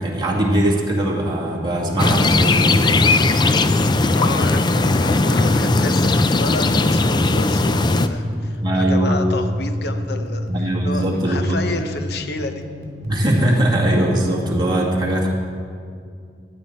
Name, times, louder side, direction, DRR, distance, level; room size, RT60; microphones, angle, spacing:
voice 1, 0.0-3.3 8.6-9.2 10.5-11.6 13.0-15.3, right 1 dB, 25° right, -3 dB, 1.9 m, -20 dB
sound 1, 2.0-8.1, left 2 dB, 25° left, 0.4 m, -17 dB
voice 2, 4.1-10.5 10.8-12.6, left 3 dB, 65° left, 8 dB, 0.8 m, -30 dB
sound 2, 7.5-14.3, equal, 50° right, 2.4 m, -30 dB
16.0 x 9.7 x 4.4 m, 2.3 s
head